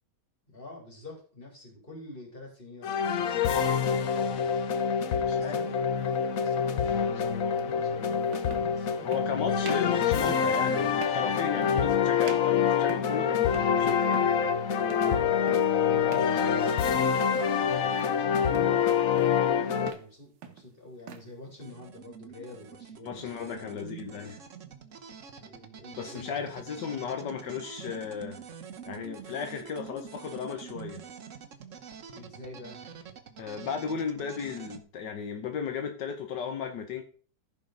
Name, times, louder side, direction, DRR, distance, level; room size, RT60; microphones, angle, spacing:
voice 1, 0.5-4.6 5.1-9.9 15.2-23.8 25.4-26.5 32.1-32.8, left 2 dB, 30° left, 0 dB, 3.3 m, -47 dB
sound 1, 2.8-19.9, left 7 dB, 60° left, 1.1 m, -26 dB
voice 2, 5.2-5.6 9.0-14.3 23.0-24.4 26.0-28.4 28.8-31.0 33.4-37.0, left 6 dB, 80° left, 5 dB, 1.6 m, -35 dB
sound 2, 6.1-6.3 7.6-7.7 8.3-8.7 9.1-9.3 9.6-9.9 10.3-10.6 11.0-11.3 11.6-12.0 12.2-13.2 13.5-13.8 14.1-14.4 14.9-15.2 15.5-15.7 16.1-16.4 16.7-17.0 17.3-18.1 18.5-18.8 19.2-19.5 19.8-20.1 20.4-21.3, right 7 dB, 80° right, 1.7 m, -44 dB
sound 3, 21.6-34.8, right 6 dB, 50° right, 1.3 m, -46 dB
15.0 x 5.1 x 3.9 m, 0.42 s
omnidirectional pair, 1.9 m